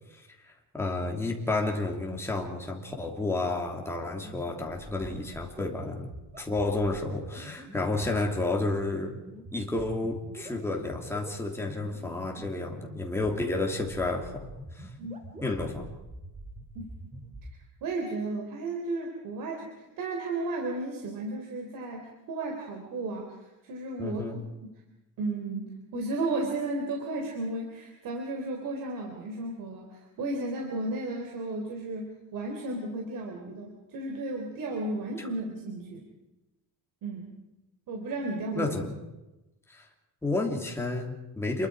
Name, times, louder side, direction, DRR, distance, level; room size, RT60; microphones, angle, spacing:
voice 1, 0.4-6.1 6.4-9.1 9.5-14.9 15.4-15.9 24.0-24.4 35.2-35.3 38.5-38.9 39.7-39.8 40.2-41.7, left 2 dB, 5° left, 0 dB, 3.1 m, -31 dB
sound 1, 4.2-17.5, right 1 dB, 20° right, 3.2 m, -45 dB
voice 2, 17.8-23.4 23.6-24.3 25.2-36.1 37.0-37.3 37.9-38.8, right 2 dB, 60° right, 1 dB, 4.0 m, -34 dB
28.5 x 23.0 x 5.0 m, 1.0 s
cardioid pair, 150°, 37 cm